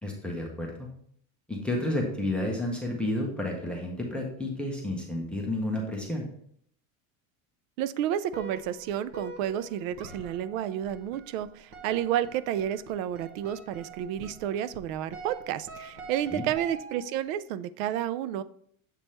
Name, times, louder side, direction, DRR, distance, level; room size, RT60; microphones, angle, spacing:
voice 1, 0.0-0.9 1.5-6.2 16.3-16.5, left 1 dB, 5° left, 0 dB, 0.6 m, -31 dB
voice 2, 7.8-18.4, right 10 dB, 90° right, 16 dB, 0.5 m, -31 dB
sound 1, 8.3-17.3, right 4 dB, 35° right, 0.8 m, -45 dB
7.5 x 3.5 x 4.2 m, 0.66 s
cardioid pair, 170°, 38 cm